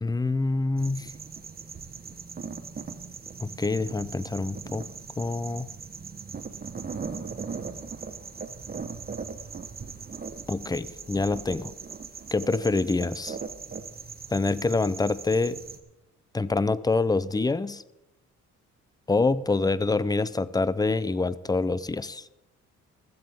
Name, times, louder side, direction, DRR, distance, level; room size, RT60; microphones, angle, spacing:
voice 1, 0.0-1.1 3.4-4.8 5.2-5.7 10.5-11.7 12.3-13.4 14.3-15.6 16.3-17.8 19.1-22.3, left 3 dB, 15° left, 17 dB, 0.5 m, -26 dB
sound 1, 0.8-15.8, right 5 dB, 30° right, 1.1 m, -39 dB
15.5 x 13.5 x 3.6 m, 0.92 s
cardioid pair, 90°, 30 cm